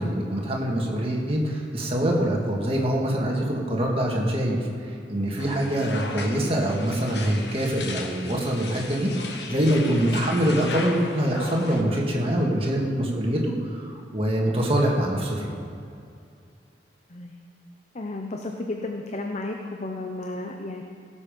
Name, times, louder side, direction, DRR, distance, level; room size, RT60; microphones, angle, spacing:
voice 1, 0.0-15.5, right 1 dB, 35° right, -1 dB, 1.9 m, -24 dB
sound 1, 5.4-11.8, left 3 dB, 70° left, 1.3 m, -37 dB
voice 2, 17.9-20.8, left 2 dB, 40° left, 3 dB, 0.7 m, -33 dB
17.5 x 7.4 x 5.3 m, 2.5 s
head